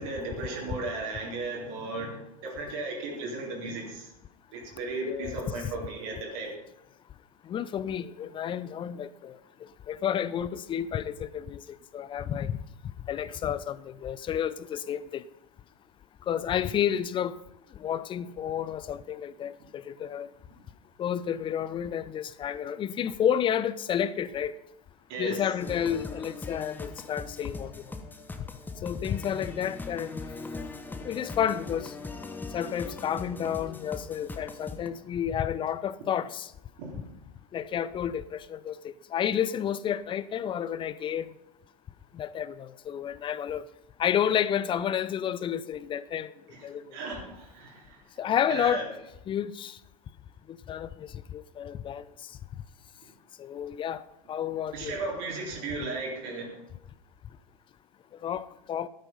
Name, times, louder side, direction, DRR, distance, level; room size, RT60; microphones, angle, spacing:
voice 1, 0.0-4.0 4.5-6.5 25.1-25.4 36.8-36.9 46.9-47.8 48.5-48.8 54.7-56.5, right 3 dB, 55° right, 3.9 m, -35 dB
voice 2, 5.0-5.7 7.4-9.4 9.9-12.6 13.1-15.2 16.3-17.4 17.7-20.3 21.0-24.6 25.2-27.9 28.4-28.5 28.8-30.2 31.0-31.9 32.5-36.5 37.5-41.3 42.1-43.6 44.0-46.3 46.6-47.0 48.2-48.9 49.3-49.8 50.5-52.3 53.4-55.0 58.2-58.9, left 9 dB, 25° left, 0.7 m, -31 dB
sound 1, 25.6-34.9, left 3 dB, 10° left, 1.3 m, -40 dB
12.5 x 9.3 x 5.5 m
figure-of-eight pair, 90°, 19 cm